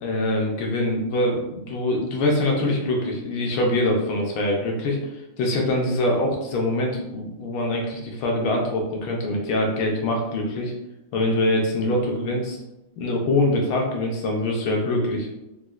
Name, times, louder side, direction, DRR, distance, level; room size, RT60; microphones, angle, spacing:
voice 1, 0.0-5.1 5.4-10.7 11.1-12.6 13.0-15.3, left 1 dB, 75° left, -1 dB, 1.3 m, -24 dB
4.1 x 2.1 x 2.3 m, 0.94 s
omnidirectional pair, 2.3 m